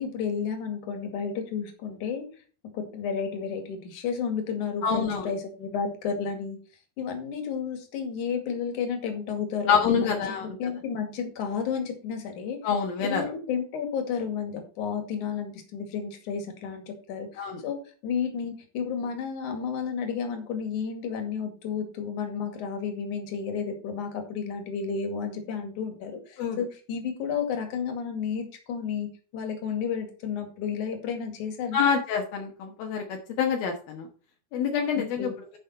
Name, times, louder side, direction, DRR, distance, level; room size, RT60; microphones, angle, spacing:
voice 1, 0.0-2.3 2.7-6.6 7.0-10.2 10.6-12.6 13.0-31.9 35.0-35.4, left 6 dB, 55° left, 6 dB, 3.4 m, -32 dB
voice 2, 4.8-5.3 9.7-10.6 12.6-13.3 17.4-17.6 26.4-26.6 31.7-34.1 34.5-35.3, left 6 dB, 75° left, 1 dB, 3.1 m, -26 dB
10.5 x 6.3 x 4.3 m, 0.39 s
omnidirectional pair, 4.4 m